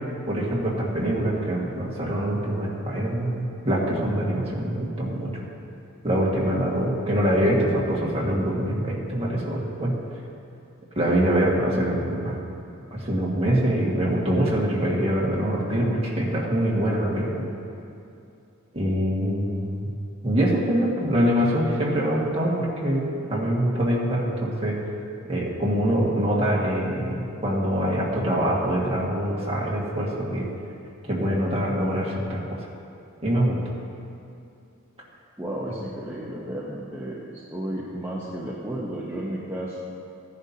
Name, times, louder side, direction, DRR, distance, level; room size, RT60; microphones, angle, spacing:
voice 1, 0.3-5.3 6.0-9.9 10.9-12.4 12.9-17.5 18.7-19.9 20.2-24.8 25.3-30.5 31.0-32.6 33.2-33.6, equal, 30° right, -4 dB, 1.8 m, -24 dB
voice 2, 35.4-39.8, right 1 dB, 10° right, -7 dB, 0.9 m, -33 dB
15.5 x 10.5 x 2.8 m, 2.6 s
head